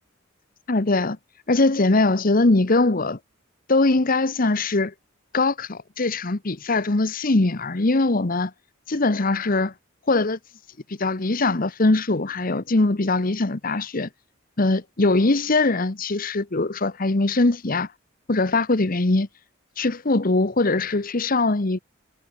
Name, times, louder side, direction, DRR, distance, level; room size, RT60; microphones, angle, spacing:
voice 1, 0.7-1.2 1.5-3.2 3.7-4.9 5.3-8.5 8.9-9.7 10.1-10.4 10.9-14.1 14.6-17.9 18.3-19.3 19.8-21.8, left 2 dB, 45° left, 1.0 m, -21 dB
head